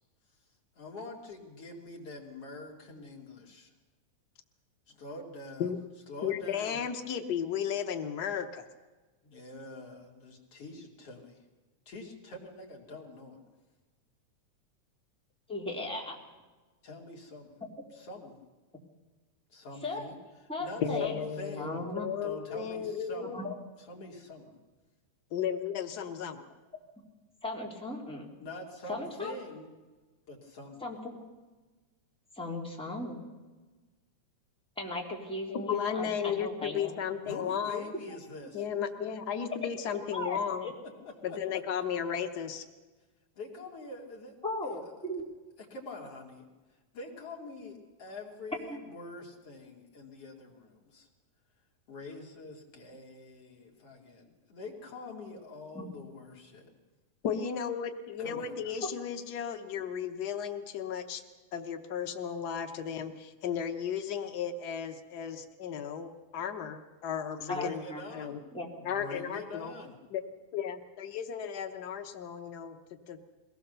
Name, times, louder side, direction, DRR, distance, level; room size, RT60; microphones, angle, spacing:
voice 1, 0.8-3.7 4.9-5.7 6.1-6.8 9.2-11.4 11.9-13.4 16.8-17.6 17.9-18.4 19.5-20.2 20.6-21.8 22.2-23.4 23.8-24.6 28.4-29.7 30.3-30.8 37.2-38.6 41.3-41.4 43.4-44.4 44.6-44.7 45.7-46.5 46.9-51.1 51.9-56.7 58.2-58.8 67.4-68.4 68.7-70.0, left 2 dB, 50° left, 0 dB, 3.8 m, -45 dB
voice 2, 6.2-8.6 20.8-23.5 25.3-26.4 35.5-37.9 38.5-40.7 41.2-42.6 57.2-61.2 61.5-67.8 68.1-68.4 68.8-69.7 70.1-70.2 70.5-72.8 73.1-73.2, left 8 dB, 85° left, 6 dB, 0.8 m, -34 dB
voice 3, 15.5-16.1 19.8-20.0 20.5-21.1 21.6-22.1 23.2-23.5 27.4-28.4 28.9-29.4 30.8-31.2 32.4-33.2 34.8-37.0 39.0-39.1 40.1-40.7 44.4-45.2 48.7-48.8 55.7-55.8 67.5-68.0 68.5-68.7, left 2 dB, ahead, -2 dB, 3.0 m, -37 dB
22.5 x 18.0 x 6.8 m, 1.3 s
omnidirectional pair, 3.4 m